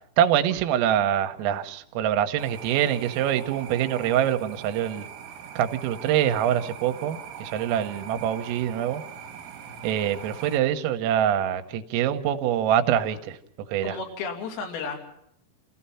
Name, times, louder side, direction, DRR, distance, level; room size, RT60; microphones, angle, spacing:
voice 1, 0.2-5.1 5.6-9.0 9.8-13.4 13.7-14.0, right 10 dB, 80° right, 9 dB, 3.6 m, -24 dB
sound 1, 2.4-10.6, right 8 dB, 65° right, 3.7 m, -41 dB
voice 2, 13.8-15.0, left 4 dB, 80° left, 2 dB, 5.4 m, -33 dB
28.5 x 16.5 x 5.6 m, 0.75 s
omnidirectional pair, 6.0 m